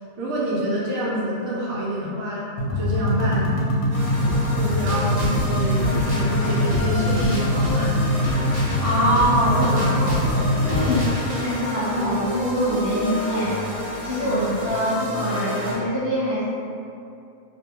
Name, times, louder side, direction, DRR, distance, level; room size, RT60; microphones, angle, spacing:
voice 1, 0.2-3.6 4.5-7.9 8.4-8.5 14.2-14.5, right 1 dB, 85° right, -6 dB, 1.1 m, -27 dB
sound 1, 2.6-11.1, left 1 dB, 90° left, 1.0 m, -23 dB
sound 2, 3.9-15.9, left 1 dB, 30° right, 0.4 m, -29 dB
voice 2, 8.8-11.1 11.4-13.6 14.0-16.4, equal, 60° left, -9 dB, 0.7 m, -24 dB
2.5 x 2.1 x 2.8 m, 2.5 s
omnidirectional pair, 1.4 m